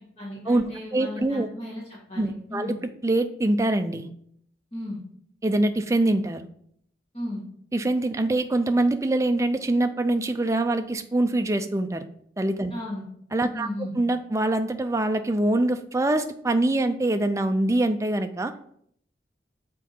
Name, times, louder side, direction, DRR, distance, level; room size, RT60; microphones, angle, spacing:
voice 1, 0.1-2.7 4.7-5.0 7.1-7.4 12.7-13.0 13.5-13.9, left 1 dB, 30° left, -5 dB, 1.6 m, -35 dB
voice 2, 0.9-1.5 2.2-2.8 3.0-4.1 5.4-6.5 7.7-12.0 12.4-12.7 13.3-13.7 13.9-18.5, right 2 dB, 15° right, 8 dB, 0.4 m, -24 dB
6.1 x 4.5 x 4.2 m, 0.67 s
head